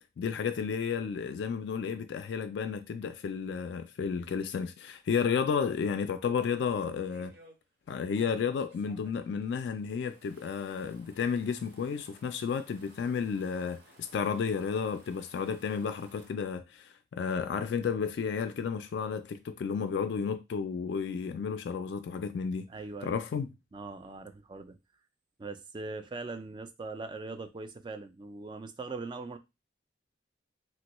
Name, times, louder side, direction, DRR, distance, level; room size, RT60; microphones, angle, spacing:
voice 1, 0.2-7.3 7.9-22.7 23.0-23.5, left 6 dB, 70° left, 0.3 m, -32 dB
sound 1, 6.4-7.5 8.1-16.3, right 1 dB, 60° right, 0.9 m, -59 dB
voice 2, 22.7-23.1 23.7-24.8 25.4-29.4, right 3 dB, 25° right, 0.3 m, -41 dB
3.3 x 2.2 x 2.9 m
head